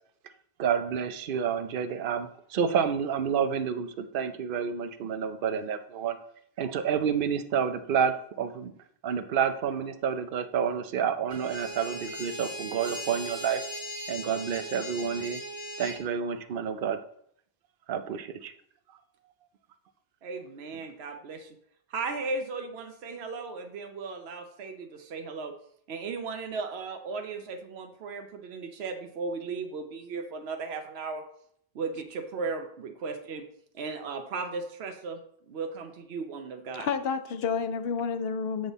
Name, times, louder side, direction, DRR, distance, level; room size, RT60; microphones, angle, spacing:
voice 1, 0.6-6.2 6.6-8.7 9.0-13.6 14.1-15.4 15.8-17.0 17.9-18.5 20.7-20.8, right 7 dB, 65° right, 9 dB, 0.8 m, -29 dB
sound 1, 11.3-16.0, right 1 dB, 20° left, 3.0 m, -38 dB
voice 2, 20.2-21.6 21.9-25.5 25.9-31.2 31.7-33.4 33.7-35.2 35.5-36.9, right 4 dB, 85° right, 5 dB, 1.0 m, -36 dB
voice 3, 36.8-38.7, left 6 dB, 75° left, 10 dB, 0.9 m, -30 dB
7.8 x 5.4 x 4.0 m, 0.67 s
omnidirectional pair, 1.0 m